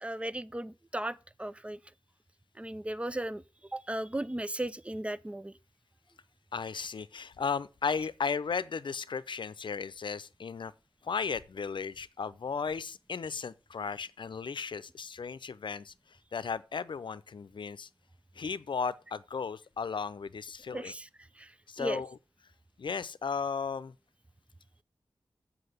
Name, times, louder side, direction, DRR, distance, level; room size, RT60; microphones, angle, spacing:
voice 1, 0.0-1.8 2.6-3.4 3.7-5.5 20.7-21.1 21.4-21.5 21.8-22.0, right 1 dB, 15° right, 0.5 m, -36 dB
voice 2, 6.5-10.7 11.0-15.9 16.3-17.9 18.4-20.9 21.7-22.1 22.8-23.9, left 5 dB, 70° left, 0.6 m, -35 dB
7.9 x 5.8 x 6.7 m
wide cardioid pair, 70°, 9 cm